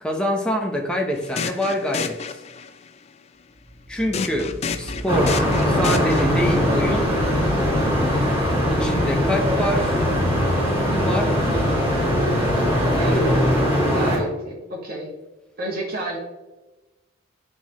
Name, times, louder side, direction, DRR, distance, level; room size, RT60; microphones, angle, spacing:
voice 1, 0.0-2.2 3.9-7.1 8.7-10.0 10.7-11.7 12.8-13.3, equal, 5° left, 1 dB, 0.8 m, -26 dB
sound 1, 1.2-2.9 4.1-6.6, left 5 dB, 30° left, 0.3 m, -30 dB
sound 2, 3.6-13.5, right 1 dB, 90° right, 1.3 m, -34 dB
sound 3, 5.1-14.2, equal, 10° right, 2.4 m, -21 dB
voice 2, 13.9-15.1 15.6-16.2, right 1 dB, 45° right, -3 dB, 1.9 m, -30 dB
9.0 x 4.3 x 3.1 m, 1.1 s
head